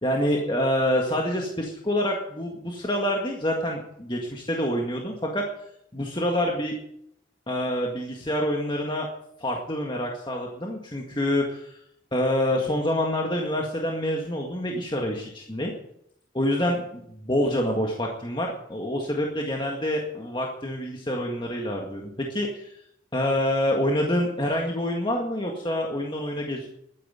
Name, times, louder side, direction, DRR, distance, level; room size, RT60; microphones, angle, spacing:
voice 1, 0.0-5.5 5.9-6.7 7.5-9.1 9.4-11.8 12.1-15.7 16.3-22.7 23.1-26.7, left 1 dB, 25° left, 0 dB, 1.8 m, -27 dB
12.0 x 10.0 x 9.1 m, 0.73 s
head